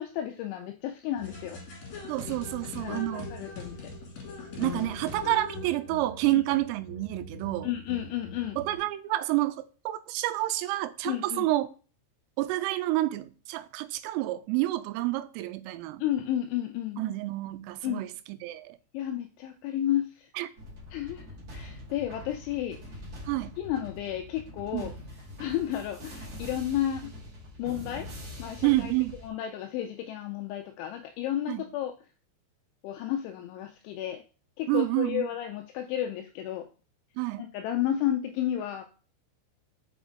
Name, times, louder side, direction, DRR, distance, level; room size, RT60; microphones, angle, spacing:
voice 1, 0.0-1.6 2.8-3.9 7.6-8.6 11.0-11.5 16.0-17.0 17.8-18.0 18.9-20.3 20.9-21.2 21.5-22.8 23.6-24.9 25.4-27.1 27.6-28.1 28.4-28.9 29.2-31.9 32.8-34.2 34.6-36.7 37.4-38.8, left 11 dB, 85° left, 2.7 m, -32 dB
sound 1, 1.2-8.8, left 3 dB, 50° left, 2.3 m, -41 dB
voice 2, 2.1-3.3 4.6-7.7 8.6-11.7 12.4-16.0 17.0-18.8 20.4-20.5 23.3-23.6 24.7-25.0 28.6-29.2 31.5-31.7 34.7-35.3 37.2-37.5, right 17 dB, 90° right, 3.2 m, -29 dB
sound 2, 20.6-29.3, left 1 dB, 45° right, 2.2 m, -44 dB
7.0 x 5.1 x 3.7 m
omnidirectional pair, 5.9 m